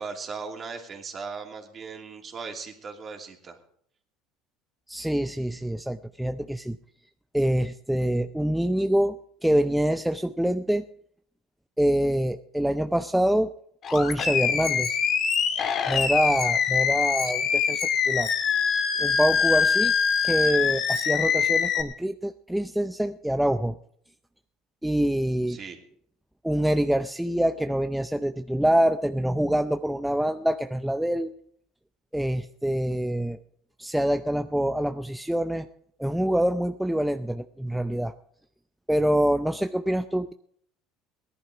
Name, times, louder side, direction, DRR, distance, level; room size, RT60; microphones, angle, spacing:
voice 1, 0.0-3.6 25.5-25.8, right 5 dB, 35° right, 2 dB, 2.8 m, -38 dB
voice 2, 4.9-6.8 7.3-10.8 11.8-13.5 13.9-15.0 15.9-18.3 19.0-19.9 20.2-23.8 24.8-25.6 26.4-31.3 32.1-33.4 33.8-35.7 36.0-38.1 38.9-40.3, right 1 dB, 5° right, 7 dB, 0.6 m, -25 dB
Animal, 13.8-21.8, left 6 dB, 50° left, 2.0 m, -24 dB
17.5 x 11.0 x 5.0 m, 0.64 s
supercardioid pair, 90°, 0 cm